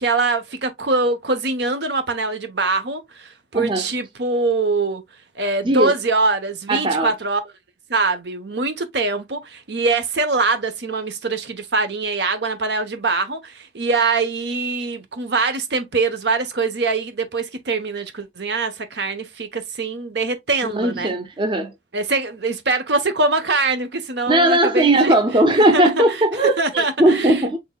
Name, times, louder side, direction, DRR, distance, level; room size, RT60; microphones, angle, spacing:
voice 1, 0.0-5.0 5.3-7.4 7.9-21.2 21.9-25.1 25.7-25.9 26.6-27.4, right 3 dB, 65° right, 1.0 m, -23 dB
voice 2, 3.5-3.9 5.6-5.9 6.7-7.1 20.6-21.7 24.3-27.6, right 1 dB, 25° right, 0.6 m, -18 dB
6.2 x 3.5 x 2.3 m
head